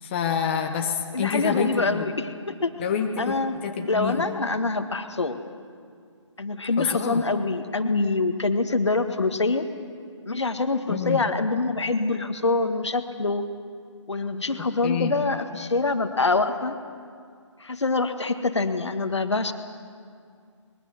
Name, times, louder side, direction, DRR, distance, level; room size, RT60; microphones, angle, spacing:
voice 1, 0.0-2.1 2.8-4.2 6.8-7.2 10.9-11.2 14.6-15.1, left 7 dB, 20° left, 2 dB, 1.3 m, -27 dB
voice 2, 1.1-2.7 3.2-3.6 3.9-5.4 6.4-9.7 10.3-13.4 14.1-16.7 17.6-19.5, left 3 dB, 60° left, 8 dB, 1.8 m, -25 dB
24.5 x 22.0 x 7.3 m, 2.2 s
figure-of-eight pair, 145°, 16 cm